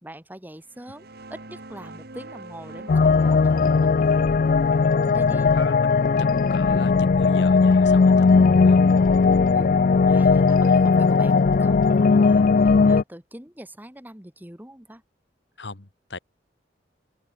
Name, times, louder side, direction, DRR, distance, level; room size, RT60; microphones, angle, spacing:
voice 1, 0.0-4.5 5.0-5.5 9.5-15.0, right 1 dB, 10° right, 3.4 m, -43 dB
sound 1, 0.7-10.0, right 2 dB, 60° right, 2.6 m, -45 dB
sound 2, 2.9-13.0, left 4 dB, 50° left, 0.4 m, -18 dB
voice 2, 5.5-8.3 8.6-8.9 15.6-16.2, left 3 dB, 70° left, 2.0 m, -37 dB
head